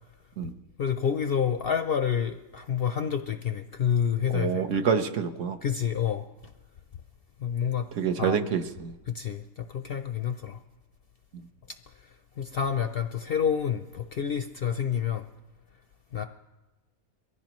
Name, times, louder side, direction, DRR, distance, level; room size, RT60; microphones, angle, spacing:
voice 1, 0.8-4.8 5.6-6.2 7.4-7.9 8.2-8.5 9.1-10.6 12.4-15.2 16.1-16.2, left 8 dB, 60° left, 8 dB, 0.6 m, -28 dB
voice 2, 4.3-5.6 8.0-8.9, right 7 dB, 65° right, 7 dB, 1.1 m, -27 dB
23.0 x 15.5 x 3.0 m, 1.1 s
omnidirectional pair, 1.5 m